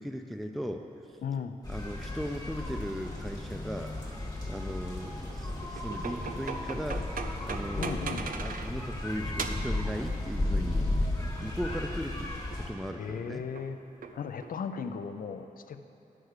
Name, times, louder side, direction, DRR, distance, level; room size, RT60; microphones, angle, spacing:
voice 1, 0.0-1.2 1.7-3.9 4.5-7.2 7.4-10.9 11.4-13.4, equal, ahead, 5 dB, 0.3 m, -38 dB
voice 2, 1.2-1.6 7.8-8.3 11.7-11.8 13.0-13.8 14.1-15.8, left 6 dB, 75° left, 9 dB, 0.4 m, -36 dB
sound 1, 1.6-12.7, left 2 dB, 25° left, 1.3 m, -34 dB
sound 2, 4.0-8.8 9.2-9.8 11.0-12.2 12.5-12.7 13.6-14.6, right 5 dB, 70° right, 0.5 m, -40 dB
11.0 x 4.6 x 6.5 m, 2.8 s
wide cardioid pair, 170°, 15 cm